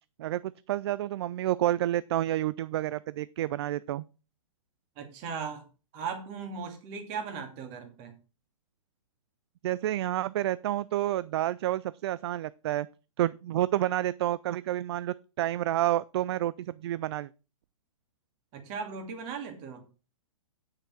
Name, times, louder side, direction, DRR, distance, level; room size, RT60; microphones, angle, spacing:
voice 1, 0.2-4.0 9.6-12.9 13.2-17.3, right 13 dB, 50° right, 0.4 m, -29 dB
voice 2, 5.0-5.6 5.9-8.1 18.5-19.8, right 5 dB, 35° right, 2.7 m, -37 dB
8.5 x 6.5 x 6.0 m
hypercardioid pair, 135°, 17 cm